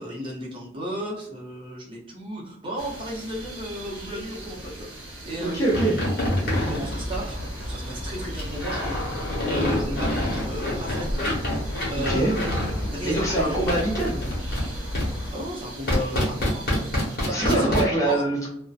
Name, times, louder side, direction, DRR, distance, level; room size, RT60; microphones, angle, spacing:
voice 1, 0.0-5.7 6.5-7.4 7.7-11.1 11.9-13.7 15.3-17.8 18.0-18.2, equal, 25° right, -4 dB, 0.7 m, -34 dB
sound 1, 2.8-17.2, right 1 dB, 85° right, 1.0 m, -41 dB
voice 2, 5.4-6.0 11.9-12.4 13.0-14.2 17.3-18.5, right 1 dB, 15° left, -4 dB, 0.5 m, -24 dB
sound 2, 5.7-7.7 8.3-12.9 13.7-14.7 14.9-15.1 15.9-17.8, left 1 dB, 50° left, 1.1 m, -27 dB
sound 3, 6.2-15.3, equal, 80° left, 0.7 m, -33 dB
2.6 x 2.1 x 2.4 m, 0.77 s
head